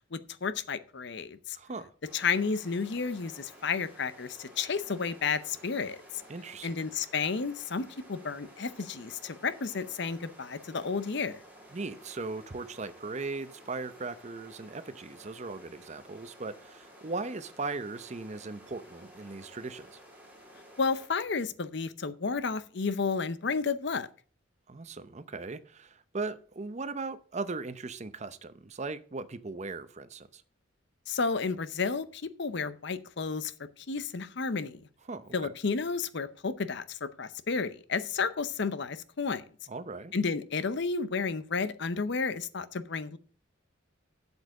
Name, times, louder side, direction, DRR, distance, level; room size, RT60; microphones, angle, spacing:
voice 1, 0.1-1.6 2.1-6.0 6.6-7.8 8.1-11.4 20.8-24.1 31.1-33.5 33.9-34.8 35.3-39.4 40.1-43.2, left 5 dB, 60° left, 0.7 m, -32 dB
voice 2, 1.5-1.9 6.3-6.8 11.7-20.0 24.7-30.4 35.1-35.5 39.7-40.1, right 3 dB, 35° right, 0.6 m, -38 dB
sound 1, 2.0-21.1, equal, 10° right, 3.6 m, -53 dB
8.0 x 7.2 x 6.3 m
head